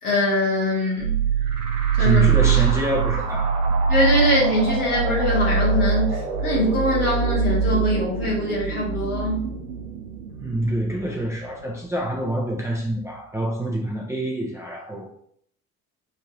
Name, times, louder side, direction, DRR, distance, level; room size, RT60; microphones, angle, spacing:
voice 1, 0.0-1.2 2.0-2.3 3.9-9.4, equal, 80° left, -7 dB, 1.3 m, -22 dB
sound 1, 1.0-12.4, right 5 dB, 75° right, 0.6 m, -24 dB
voice 2, 2.0-3.6 10.4-15.1, right 1 dB, 5° right, -3 dB, 0.4 m, -26 dB
3.1 x 2.7 x 3.6 m, 0.65 s
figure-of-eight pair, 55°, 44 cm